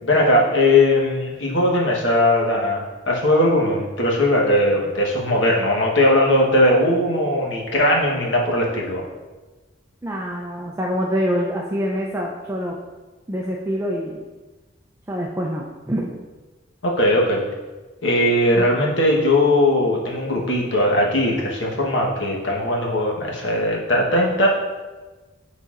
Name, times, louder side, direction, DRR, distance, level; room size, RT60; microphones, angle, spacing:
voice 1, 0.0-9.0 16.8-17.4 18.0-24.5, left 1 dB, 85° left, -2 dB, 1.2 m, -19 dB
voice 2, 10.0-12.8 13.3-14.2 15.1-16.2 18.6-18.7, equal, 15° right, -2 dB, 0.5 m, -25 dB
9.8 x 3.9 x 2.5 m, 1.2 s
head